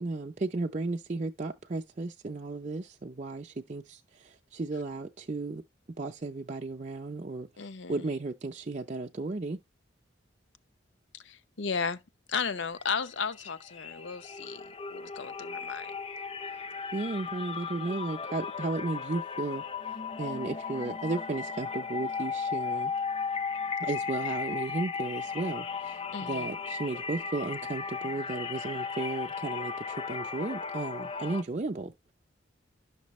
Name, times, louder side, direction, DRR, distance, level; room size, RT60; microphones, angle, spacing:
voice 1, 0.0-5.6 6.0-9.6 16.9-19.6 20.2-22.9 23.8-31.9, right 3 dB, 35° right, 0.5 m, -34 dB
voice 2, 7.6-8.1 11.2-12.0 12.3-14.6 14.9-15.9 26.1-26.5, left 5 dB, 70° left, 0.7 m, -34 dB
sound 1, 12.8-13.1 13.3-31.4, left 5 dB, 30° left, 0.5 m, -36 dB
11.5 x 6.1 x 3.1 m
head